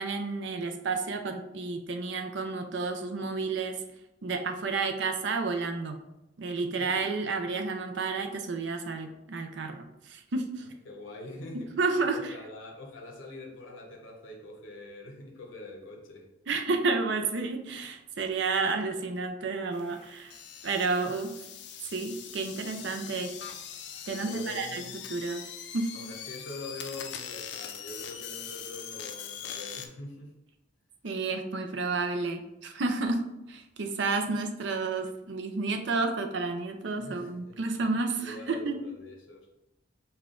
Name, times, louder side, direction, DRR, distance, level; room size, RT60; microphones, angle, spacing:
voice 1, 0.0-3.8 4.2-6.0 6.4-10.6 11.8-12.3 16.5-20.4 20.6-21.3 21.9-23.3 24.1-24.8 25.1-25.4 25.7-25.9 31.0-38.8, right 3 dB, 65° right, 5 dB, 0.5 m, -31 dB
voice 2, 10.8-11.8 12.1-16.3 24.2-25.0 25.9-30.4 34.3-34.4 37.0-39.5, left 1 dB, 90° left, 0 dB, 0.8 m, -44 dB
sound 1, 19.7-29.9, left 8 dB, 60° left, 0.4 m, -42 dB
5.4 x 2.3 x 3.7 m, 0.89 s
head